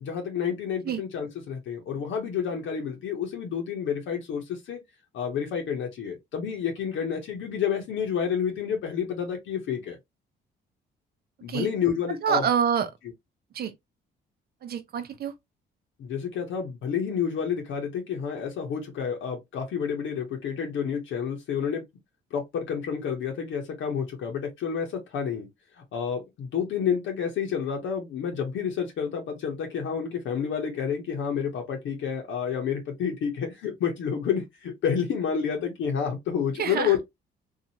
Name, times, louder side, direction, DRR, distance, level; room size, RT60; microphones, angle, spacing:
voice 1, 0.0-4.8 5.1-10.0 11.4-12.4 16.0-21.8 22.3-24.9 25.1-25.5 25.9-37.0, left 7 dB, 75° left, 0.8 m, -29 dB
voice 2, 12.2-12.9 13.5-13.7 14.6-15.3 36.6-37.0, right 7 dB, 50° right, 0.6 m, -26 dB
2.7 x 2.4 x 2.8 m
cardioid pair, 90°, 20 cm